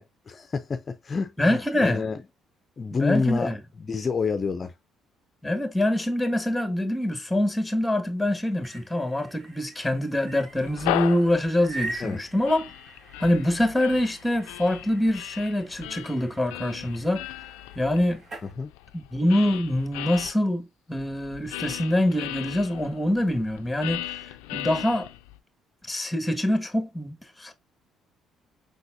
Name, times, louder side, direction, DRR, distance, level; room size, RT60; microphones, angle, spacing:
voice 1, 0.0-2.2 2.8-3.5 3.8-4.7 12.0-12.2 18.6-18.7, left 5 dB, 40° left, 0.6 m, -28 dB
voice 2, 1.4-2.0 2.9-3.6 5.4-12.7 13.2-17.2 17.7-18.2 18.9-24.2 24.5-25.1 25.9-27.5, left 1 dB, 10° left, 1.5 m, -25 dB
sound 1, 8.4-18.5, right 3 dB, 50° right, 2.4 m, -43 dB
sound 2, 10.5-20.3 21.0-25.4, left 15 dB, 90° left, 0.4 m, -37 dB
5.3 x 3.9 x 2.5 m
supercardioid pair, 65°, 0 cm